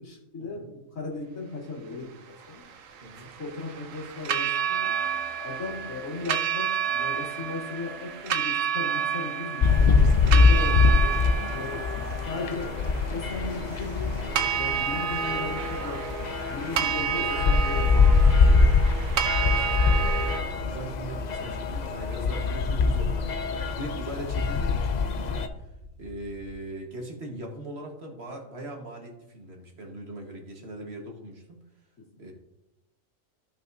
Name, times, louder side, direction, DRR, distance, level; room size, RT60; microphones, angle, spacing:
voice 1, 0.0-2.6 3.2-4.9 5.4-11.1 11.5-18.7 32.0-32.1, left 3 dB, 80° left, -3 dB, 2.4 m, -37 dB
sound 1, 2.4-20.4, right 8 dB, 75° right, 1.1 m, -30 dB
sound 2, 9.6-25.5, left 4 dB, 60° left, 0.4 m, -23 dB
sound 3, 12.4-26.5, right 1 dB, 25° right, 2.0 m, -47 dB
voice 2, 19.3-25.7 26.0-31.6 32.2-32.3, right 1 dB, 50° right, 1 dB, 1.6 m, -40 dB
14.5 x 5.6 x 2.7 m, 0.91 s
omnidirectional pair, 1.4 m